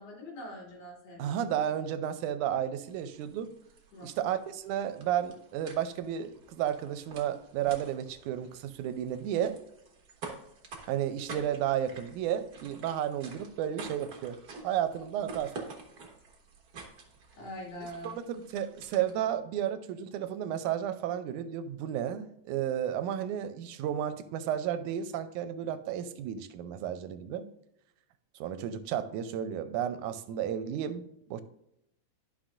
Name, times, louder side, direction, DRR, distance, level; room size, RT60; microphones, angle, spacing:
voice 1, 0.0-1.4 3.9-4.1 17.3-18.2, equal, 80° left, -3 dB, 4.1 m, -43 dB
voice 2, 1.2-3.5 4.0-9.6 10.9-14.4 14.6-15.6 18.0-27.4 28.4-31.4, right 10 dB, 85° right, 11 dB, 2.0 m, -32 dB
sound 1, 2.8-19.4, right 3 dB, 55° right, 1.1 m, -49 dB
11.5 x 5.8 x 2.5 m, 0.79 s
omnidirectional pair, 3.5 m